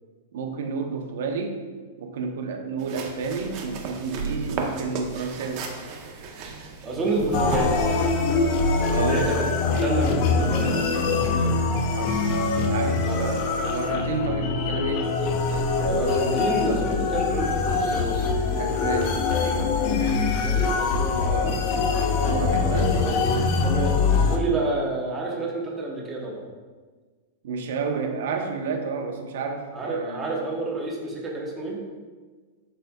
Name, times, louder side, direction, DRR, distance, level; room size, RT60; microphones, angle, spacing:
voice 1, 0.3-1.6 2.0-5.7 8.9-9.3 11.9-12.2 12.7-15.1 18.6-20.3 21.2-21.6 22.2-23.0 27.4-30.3, right 4 dB, 70° right, 4 dB, 0.9 m, -31 dB
sound 1, 2.8-7.9, right 3 dB, 35° right, 0.8 m, -33 dB
voice 2, 6.8-7.8 8.9-9.5 9.8-11.6 13.0-13.2 15.8-18.2 19.9-21.6 22.6-22.9 23.6-24.0 24.3-26.4 29.7-31.8, right 2 dB, 15° right, -2 dB, 1.1 m, -29 dB
sound 2, 7.3-24.4, left 4 dB, 40° left, 0.6 m, -23 dB
11.5 x 4.1 x 2.3 m, 1.4 s
supercardioid pair, 165°, 0 cm